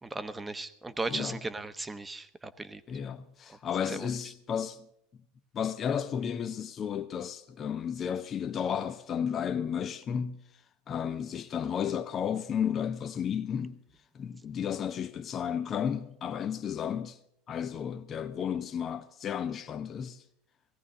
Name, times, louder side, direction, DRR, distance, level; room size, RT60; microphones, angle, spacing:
voice 1, 0.0-2.8 3.5-3.6 3.9-4.1, right 3 dB, 15° right, 1.0 m, -37 dB
voice 2, 1.1-1.4 2.9-4.9 5.5-10.4 10.9-13.8 14.1-17.2 17.5-20.2, left 8 dB, 35° left, 0.8 m, -33 dB
18.5 x 16.0 x 3.8 m
hypercardioid pair, 80°, 0 cm